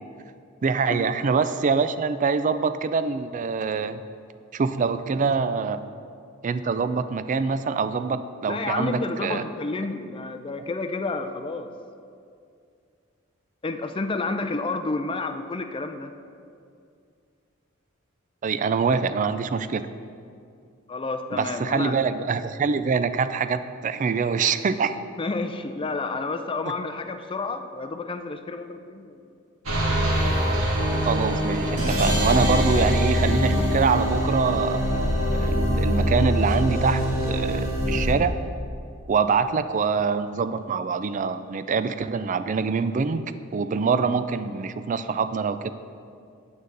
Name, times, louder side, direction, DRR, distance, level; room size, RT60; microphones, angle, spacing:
voice 1, 0.6-4.0 4.5-5.8 6.4-9.4 18.4-19.9 21.3-25.0 31.0-38.3 39.1-43.2 43.5-45.7, right 5 dB, 35° right, 12 dB, 0.3 m, -25 dB
voice 2, 8.5-11.7 13.6-16.1 20.9-21.9 25.2-29.2, left 3 dB, 25° left, 7 dB, 0.5 m, -30 dB
sound 1, 29.7-38.1, equal, 80° right, 1.7 m, -23 dB
9.4 x 8.7 x 3.9 m, 2.4 s
head